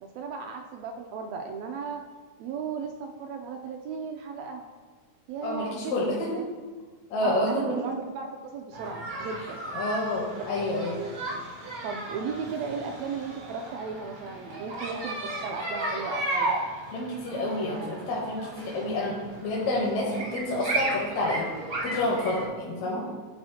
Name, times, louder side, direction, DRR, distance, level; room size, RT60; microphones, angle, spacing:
voice 1, 0.0-2.0 2.4-4.6 5.3-6.0 6.3-6.4 7.2-9.6 10.9-11.1 11.8-16.6, right 5 dB, 80° right, 3 dB, 1.6 m, -35 dB
voice 2, 5.4-6.3 7.1-7.8 9.7-11.0 16.9-21.5 21.8-23.1, left 1 dB, 75° left, -4 dB, 2.2 m, -29 dB
sound 1, 8.7-22.5, right 2 dB, 55° right, 0.9 m, -35 dB
12.5 x 4.2 x 2.7 m, 1.4 s
omnidirectional pair, 3.4 m